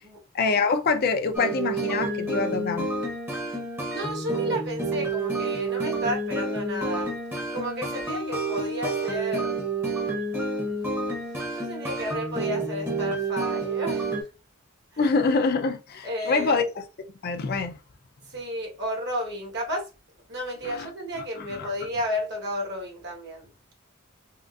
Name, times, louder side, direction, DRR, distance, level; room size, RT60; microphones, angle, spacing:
voice 1, 0.3-2.9 15.0-16.8 17.2-17.7 20.6-20.9 21.6-21.7, left 4 dB, 50° left, 0.4 m, -25 dB
sound 1, 1.3-14.2, right 2 dB, 10° right, 0.7 m, -29 dB
voice 2, 3.9-7.1 7.5-9.6 10.7-10.8 11.5-14.3 14.9-15.0 16.0-16.6 18.3-19.9 20.3-23.5, equal, 55° right, 1.1 m, -32 dB
3.6 x 2.4 x 2.3 m
head